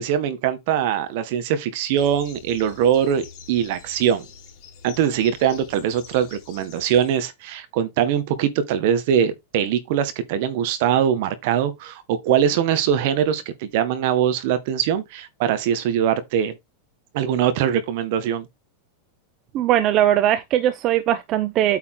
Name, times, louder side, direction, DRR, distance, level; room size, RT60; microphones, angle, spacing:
voice 1, 0.0-4.3 4.8-16.6 17.1-18.5, right 9 dB, 60° right, 1.8 m, -22 dB
sound 1, 1.9-7.2, left 7 dB, 50° left, 3.5 m, -46 dB
voice 2, 19.5-21.8, right 12 dB, 40° right, 0.7 m, -20 dB
8.7 x 4.3 x 3.9 m
hypercardioid pair, 120°, 0 cm